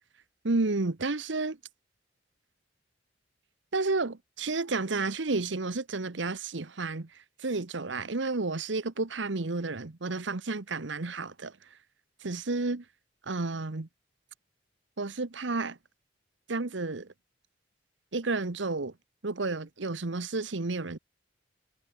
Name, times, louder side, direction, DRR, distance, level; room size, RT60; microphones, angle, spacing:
voice 1, 0.4-1.6 3.7-7.1 7.4-11.5 12.2-12.8 13.3-13.9 15.0-15.8 16.5-17.1 18.1-18.9 19.2-21.0, right 3 dB, 70° right, 1.1 m, -31 dB
head